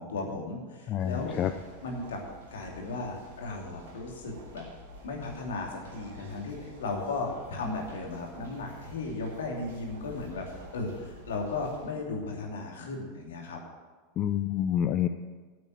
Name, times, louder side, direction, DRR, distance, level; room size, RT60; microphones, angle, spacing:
voice 1, 0.0-1.4 1.8-2.2 2.5-4.6 5.0-13.6, left 3 dB, 70° left, 0 dB, 2.8 m, -36 dB
voice 2, 0.9-1.5 14.2-15.1, left 10 dB, 40° left, 8 dB, 0.5 m, -27 dB
sound 1, 1.0-11.9, right 1 dB, 70° right, 2.8 m, -49 dB
9.1 x 8.4 x 8.9 m, 1.4 s
figure-of-eight pair, 85°, 0 cm